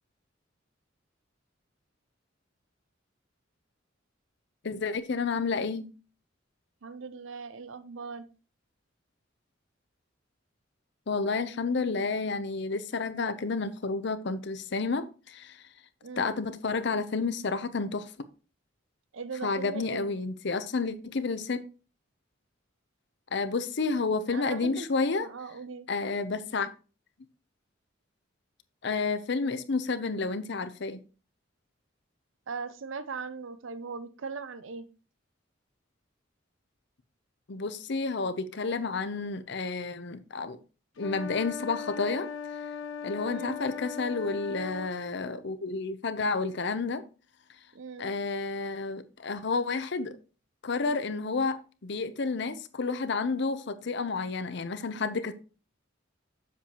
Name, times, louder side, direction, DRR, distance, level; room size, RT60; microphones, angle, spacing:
voice 1, 4.6-5.9 11.1-15.6 16.2-18.1 19.4-21.6 23.3-25.3 25.9-26.7 28.8-31.0 37.5-40.6 41.0-42.3 43.0-47.0 48.0-50.1 50.6-55.3, left 4 dB, 60° left, 0.6 m, -30 dB
voice 2, 6.8-8.3 16.0-16.4 19.1-20.1 24.3-25.9 32.5-34.9 43.3-43.6 47.7-48.1, right 5 dB, 75° right, 0.6 m, -39 dB
sound 1, 41.0-44.9, left 6 dB, 90° left, 0.9 m, -38 dB
7.4 x 7.1 x 2.9 m
head